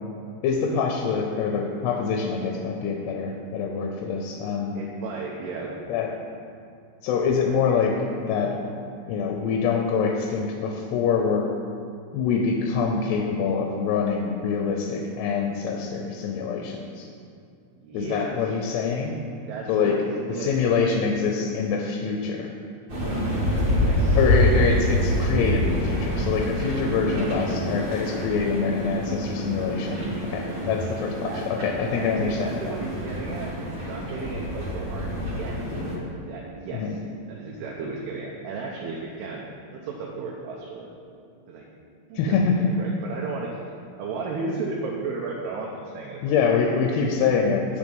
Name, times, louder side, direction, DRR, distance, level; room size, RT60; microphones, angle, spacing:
voice 1, 0.4-4.7 5.9-6.2 7.0-8.6 9.1-11.5 12.1-17.1 17.9-19.2 19.7-20.0 20.3-22.5 24.1-32.7 36.7-37.0 42.1-42.7 46.2-47.8, left 5 dB, 80° left, 2 dB, 2.7 m, -25 dB
voice 2, 4.7-5.8 17.8-18.4 19.5-20.5 20.8-20.9 23.7-24.2 26.9-27.4 31.2-35.6 36.3-36.8 37.3-39.4 39.7-40.9 41.5-41.6 42.1-42.5 42.8-43.5 44.0-46.5, right 4 dB, 80° right, -3 dB, 2.6 m, -34 dB
sound 1, 22.9-36.0, left 1 dB, 45° right, 1.6 m, -26 dB
sound 2, 27.1-41.9, right 2 dB, 55° left, 1.5 m, -43 dB
8.2 x 6.6 x 5.4 m, 2.4 s
omnidirectional pair, 4.9 m